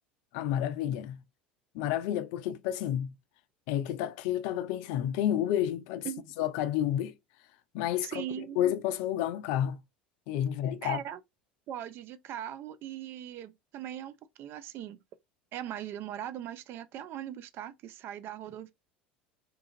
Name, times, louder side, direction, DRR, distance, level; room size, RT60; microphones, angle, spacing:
voice 1, 0.3-1.2 1.7-3.1 3.7-6.1 6.4-7.2 7.7-9.8 10.3-11.0, left 11 dB, 60° left, 0.3 m, -30 dB
voice 2, 8.0-8.7 10.8-11.2 11.7-15.0 15.5-18.7, right 11 dB, 45° right, 0.3 m, -40 dB
2.5 x 2.4 x 2.6 m
figure-of-eight pair, 70°, 5 cm